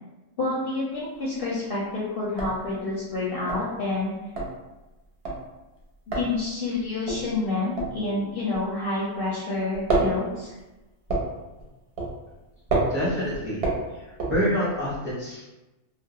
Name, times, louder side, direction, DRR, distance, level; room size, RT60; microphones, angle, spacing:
voice 1, 0.4-4.1 6.1-10.5, left 3 dB, 60° left, -7 dB, 0.6 m, -28 dB
sound 1, 1.0-1.5 1.8-1.9 2.2-9.3 9.5-14.9, right 2 dB, 60° right, 0.8 m, -30 dB
voice 2, 12.9-13.6 13.9-15.5, equal, 10° right, -9 dB, 0.6 m, -27 dB
2.3 x 2.0 x 2.8 m, 1.1 s
omnidirectional pair, 1.3 m